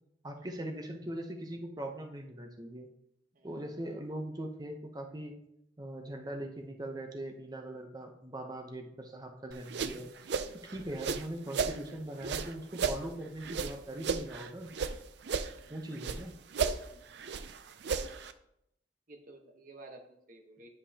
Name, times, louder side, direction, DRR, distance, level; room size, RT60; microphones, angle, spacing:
voice 1, 0.2-2.9 3.4-5.3 5.8-10.1 10.7-14.7 15.7-16.3, right 1 dB, 20° right, 3 dB, 0.7 m, -41 dB
sound 1, 9.5-11.8 12.2-15.0 15.2-16.2 16.5-18.3, right 5 dB, 60° right, 0.4 m, -34 dB
voice 2, 15.5-16.0 16.9-17.2 19.1-20.7, right 2 dB, 45° right, 2 dB, 1.0 m, -54 dB
9.9 x 5.4 x 2.8 m, 0.78 s
head